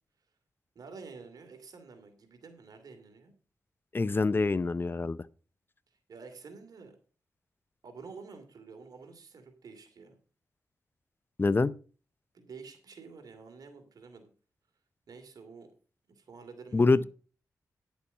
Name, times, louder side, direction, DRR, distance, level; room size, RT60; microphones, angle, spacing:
voice 1, 0.7-3.3 6.1-7.0 7.8-10.2 12.3-14.3 15.1-15.7 16.1-17.1, right 4 dB, 75° right, 2.6 m, -49 dB
voice 2, 3.9-5.2 11.4-11.7 16.7-17.0, left 3 dB, 35° left, 0.6 m, -25 dB
10.5 x 7.1 x 5.4 m
cardioid pair, 65°, 7 cm